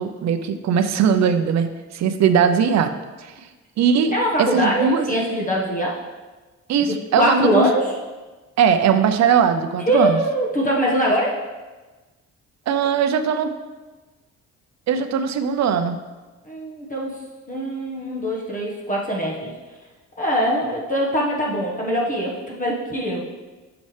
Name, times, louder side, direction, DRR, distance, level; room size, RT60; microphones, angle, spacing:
voice 1, 0.0-2.9 3.2-3.3 3.8-4.1 4.4-5.0 6.7-7.7 8.6-10.2 12.7-13.5 14.9-16.0, right 7 dB, 60° right, 8 dB, 0.6 m, -19 dB
voice 2, 4.1-6.0 6.9-7.9 9.9-11.4 16.4-17.2 17.5-19.5 20.2-23.2, equal, 25° left, -3 dB, 1.2 m, -22 dB
6.9 x 5.3 x 3.2 m, 1.2 s
cardioid pair, 90°, 30 cm